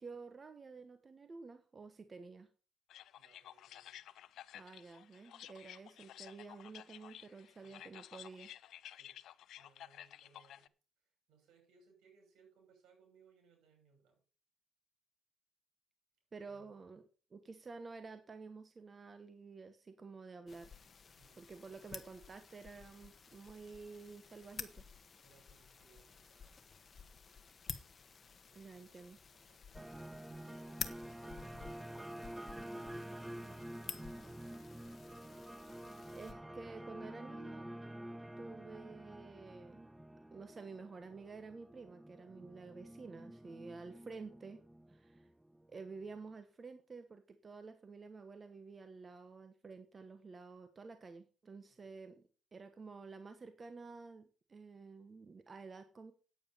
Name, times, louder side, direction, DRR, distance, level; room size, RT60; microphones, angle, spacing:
voice 1, 0.0-2.5 4.5-8.5 16.3-17.0 17.3-20.7 21.4-24.8 28.5-29.2 36.1-37.7 38.4-39.9 40.3-45.3 45.7-52.1 52.5-56.1, right 4 dB, 35° right, 8 dB, 1.2 m, -51 dB
sound 1, 2.9-10.7, left 11 dB, 75° left, 0.5 m, -54 dB
voice 2, 3.2-4.0 7.3-7.8 8.9-9.2 9.5-14.2 16.5-16.7 21.2-21.9 25.2-26.6 28.4-29.9 51.7-51.9, right 4 dB, 80° right, 2 dB, 6.9 m, -70 dB
sound 2, 20.5-36.3, left 5 dB, 40° left, 1.3 m, -51 dB
sound 3, 29.7-46.1, right 1 dB, 10° right, 0.5 m, -49 dB
9.2 x 8.8 x 5.7 m, 0.38 s
cardioid pair, 90°, 0 cm